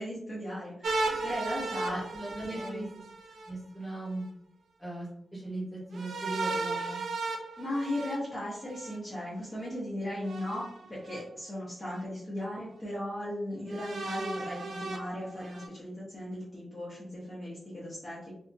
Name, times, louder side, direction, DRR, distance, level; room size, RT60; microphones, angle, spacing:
voice 1, 0.0-2.0 2.5-2.9 7.6-18.3, left 1 dB, 25° left, -8 dB, 0.8 m, -37 dB
sound 1, 0.8-3.5 5.9-9.0 10.2-11.2 11.9-12.0 13.7-15.7, right 3 dB, 80° right, 0.4 m, -35 dB
voice 2, 1.8-2.9 3.4-4.2 4.8-5.1 5.3-7.0, right 2 dB, 10° left, -7 dB, 1.2 m, -38 dB
2.7 x 2.4 x 2.6 m, 0.67 s
wide cardioid pair, 160°, 0 cm